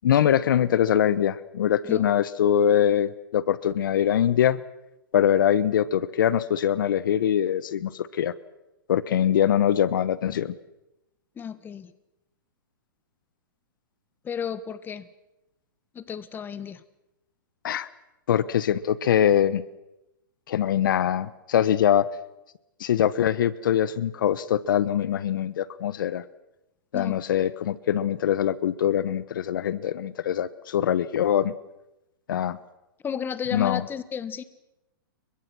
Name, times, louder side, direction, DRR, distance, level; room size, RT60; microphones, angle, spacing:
voice 1, 0.0-4.6 5.1-8.3 8.9-10.5 17.6-17.9 18.3-19.6 20.5-22.1 22.8-26.2 26.9-31.5 32.3-32.6 33.5-33.8, left 10 dB, 70° left, 18 dB, 1.1 m, -23 dB
voice 2, 11.4-11.9 14.2-15.1 15.9-16.8 26.9-27.2 33.0-34.4, left 7 dB, 20° left, 15 dB, 1.5 m, -33 dB
29.5 x 23.5 x 6.3 m, 0.94 s
hypercardioid pair, 125°, 11 cm